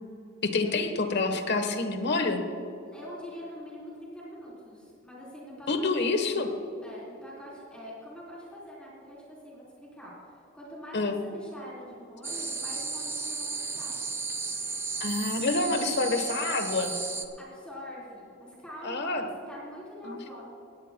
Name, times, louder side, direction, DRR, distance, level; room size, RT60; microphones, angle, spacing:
voice 1, 0.4-2.4 5.7-6.5 10.9-11.2 15.0-16.9 18.8-19.2 20.0-20.2, left 3 dB, 55° left, 6 dB, 1.1 m, -27 dB
voice 2, 2.8-6.1 6.8-13.9 17.4-20.4, equal, 5° left, -6 dB, 3.7 m, -44 dB
sound 1, 12.2-17.3, right 4 dB, 15° right, 0.6 m, -34 dB
17.5 x 17.5 x 2.2 m, 2.6 s
head